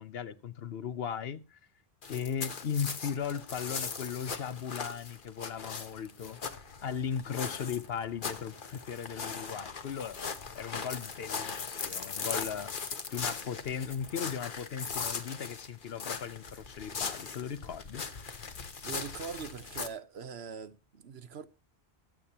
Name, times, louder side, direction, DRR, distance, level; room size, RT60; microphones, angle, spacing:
voice 1, 0.0-1.6 2.1-6.4 6.8-10.2 10.5-12.7 13.1-18.3, left 7 dB, 70° left, 1.0 m, -37 dB
sound 1, 2.0-19.9, left 5 dB, 55° left, 1.2 m, -39 dB
voice 2, 18.8-21.5, right 6 dB, 75° right, 1.1 m, -42 dB
22.5 x 8.5 x 2.9 m
omnidirectional pair, 1.1 m